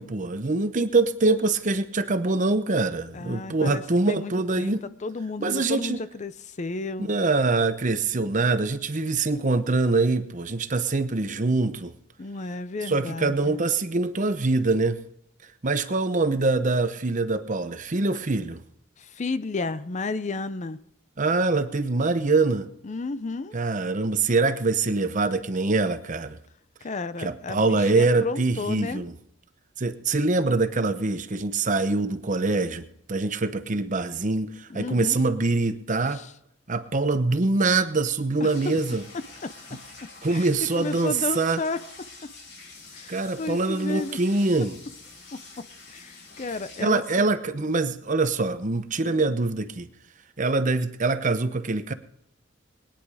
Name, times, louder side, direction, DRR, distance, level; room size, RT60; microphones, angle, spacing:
voice 1, 0.0-4.8 5.4-6.0 7.0-11.9 12.9-15.0 15.6-18.6 21.2-22.7 23.5-26.4 27.2-29.1 29.8-36.2 36.7-39.0 40.2-41.6 43.1-44.8 46.8-49.9 50.4-51.9, right 3 dB, 40° right, 11 dB, 0.9 m, -24 dB
voice 2, 3.1-3.8 4.1-4.3 4.6-4.7 5.0-7.1 12.2-13.6 19.0-20.8 22.8-23.5 26.8-29.0 34.7-35.2 36.1-36.3 38.4-38.7 39.4-39.8 40.3-41.8 42.9-44.2 45.6-47.3 49.1-49.2, left 3 dB, 35° left, 14 dB, 0.5 m, -32 dB
sound 1, 38.5-46.9, left 3 dB, 70° left, 6.2 m, -46 dB
20.5 x 10.5 x 4.9 m, 0.74 s
head